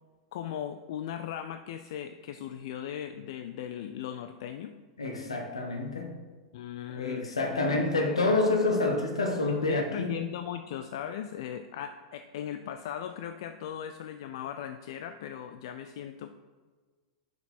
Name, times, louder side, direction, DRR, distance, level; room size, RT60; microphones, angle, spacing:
voice 1, 0.3-4.7 6.5-7.3 7.7-7.8 9.5-16.3, left 9 dB, 60° left, 8 dB, 0.3 m, -38 dB
voice 2, 5.0-6.1 6.9-10.1, left 2 dB, 85° left, 3 dB, 1.1 m, -28 dB
6.5 x 4.7 x 4.5 m, 1.4 s
hypercardioid pair, 95°, 3 cm